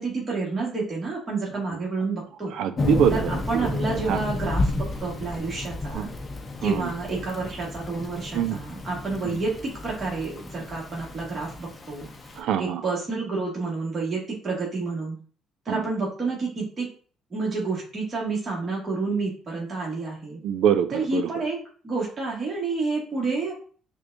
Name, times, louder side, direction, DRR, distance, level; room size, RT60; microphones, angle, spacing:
voice 1, 0.0-2.5 3.1-6.1 6.6-12.1 12.6-15.2 15.6-16.9 17.3-20.4 20.9-21.6 21.8-23.5, right 3 dB, 30° right, -4 dB, 1.4 m, -29 dB
voice 2, 2.5-3.8 4.1-4.2 5.9-6.1 6.6-6.9 8.3-8.6 9.2-9.4 12.4-12.8 15.7-15.8 20.4-21.3, right 9 dB, 75° right, 10 dB, 0.4 m, -24 dB
Thunder / Rain, 2.8-12.4, left 2 dB, 30° left, 0.6 m, -32 dB
6.0 x 2.3 x 2.5 m, 0.42 s
cardioid pair, 95°, 0 cm